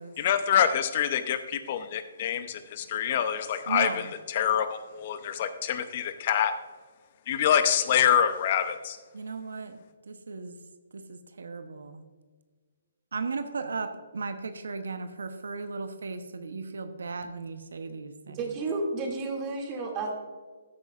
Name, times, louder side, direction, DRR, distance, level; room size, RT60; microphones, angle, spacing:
voice 1, 0.2-3.9 4.3-6.5 7.3-9.0, left 9 dB, 45° left, 11 dB, 0.7 m, -26 dB
voice 2, 3.7-4.1 9.1-9.8 10.1-10.5 10.9-12.0 13.1-18.4, right 4 dB, 75° right, 9 dB, 0.8 m, -36 dB
voice 3, 18.3-20.1, right 3 dB, 25° right, 0 dB, 2.4 m, -31 dB
13.5 x 9.0 x 2.5 m, 1.5 s
hypercardioid pair, 140°, 0 cm